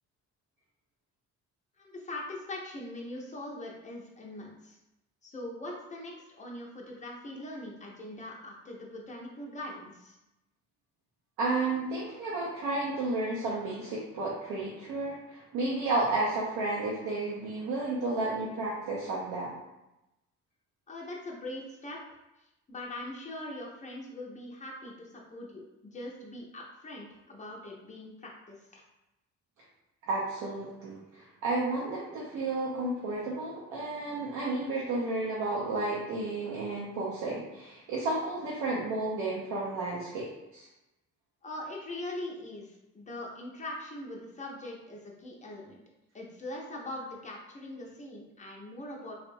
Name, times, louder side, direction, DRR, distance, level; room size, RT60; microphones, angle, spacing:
voice 1, 1.8-4.8 5.2-10.2 20.9-22.0 22.7-28.8 41.4-45.8 46.1-49.1, left 1 dB, 25° left, -2 dB, 0.6 m, -42 dB
voice 2, 11.4-19.6 30.0-40.3 40.5-40.7, right 2 dB, 90° right, -6 dB, 0.6 m, -32 dB
2.7 x 2.0 x 2.6 m, 0.94 s
cardioid pair, 90°, 30 cm